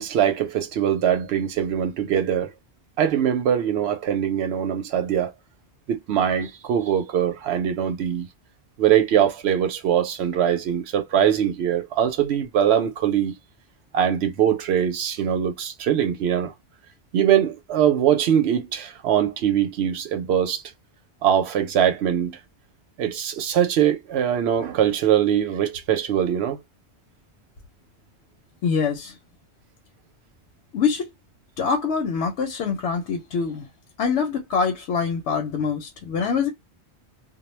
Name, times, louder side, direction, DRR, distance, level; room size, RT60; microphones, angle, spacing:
voice 1, 0.0-2.5 3.0-5.3 5.9-8.3 8.8-13.3 13.9-16.5 17.1-20.6 21.2-22.4 23.0-26.6, right 9 dB, 70° right, 0.8 m, -22 dB
voice 2, 28.6-29.2 30.7-31.1 31.6-33.7 34.0-36.5, left 5 dB, 85° left, 0.9 m, -24 dB
2.2 x 2.1 x 3.0 m
omnidirectional pair, 1.2 m